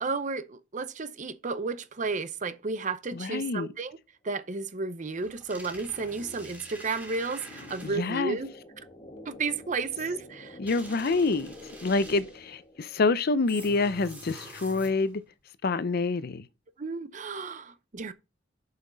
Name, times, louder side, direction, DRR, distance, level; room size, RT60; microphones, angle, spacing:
voice 1, 0.0-4.0 4.2-8.5 9.2-10.6 16.8-18.1, right 4 dB, 40° right, 0.7 m, -33 dB
voice 2, 3.1-3.7 7.8-8.4 10.6-11.5 11.8-15.2 15.6-16.5, left 3 dB, 55° left, 0.5 m, -27 dB
sound 1, 4.6-13.3, equal, 30° left, 1.2 m, -50 dB
sound 2, 5.1-8.2 10.7-12.5 13.5-15.2, right 1 dB, 10° right, 2.9 m, -46 dB
7.2 x 5.7 x 3.8 m
head